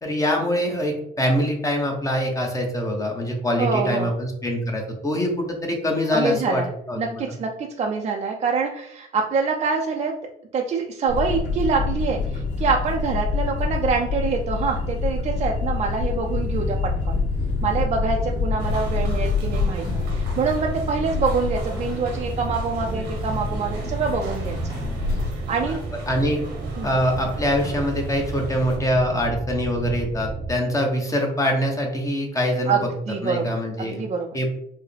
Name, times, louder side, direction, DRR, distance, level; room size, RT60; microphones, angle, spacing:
voice 1, 0.0-7.3 26.1-26.4 26.8-32.9 33.2-34.0 34.3-34.5, equal, 20° left, 1 dB, 0.8 m, -24 dB
voice 2, 3.6-4.1 6.1-6.7 7.0-10.1 10.5-16.8 17.0-17.2 17.6-19.8 20.1-24.6 25.5-25.8 26.8-26.9 32.7-33.5 33.8-34.3, right 5 dB, 40° right, 1 dB, 0.4 m, -25 dB
sound 1, 11.1-25.3, left 4 dB, 50° left, 1.3 m, -27 dB
sound 2, 16.3-30.6, right 2 dB, 5° right, 0.9 m, -32 dB
sound 3, 18.6-28.8, right 3 dB, 90° right, 1.0 m, -40 dB
4.6 x 2.1 x 3.3 m, 0.73 s
cardioid pair, 110°, 17 cm